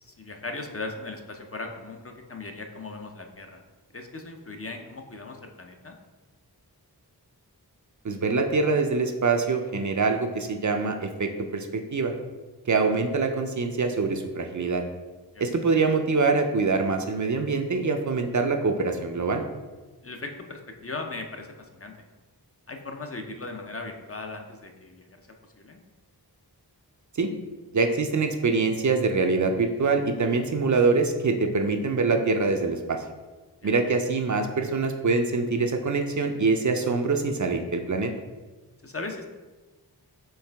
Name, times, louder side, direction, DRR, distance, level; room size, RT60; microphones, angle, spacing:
voice 1, 0.0-3.6 3.9-5.9 15.3-15.5 20.0-21.9 22.7-25.2 25.6-25.8 33.6-33.7 38.8-39.3, left 3 dB, 35° left, 3 dB, 0.5 m, -38 dB
voice 2, 8.0-12.1 12.7-14.8 15.4-19.4 27.2-27.3 27.7-33.0 33.6-38.1, right 4 dB, 50° right, 5 dB, 0.4 m, -24 dB
4.6 x 3.2 x 3.4 m, 1.3 s
wide cardioid pair, 40°, 40 cm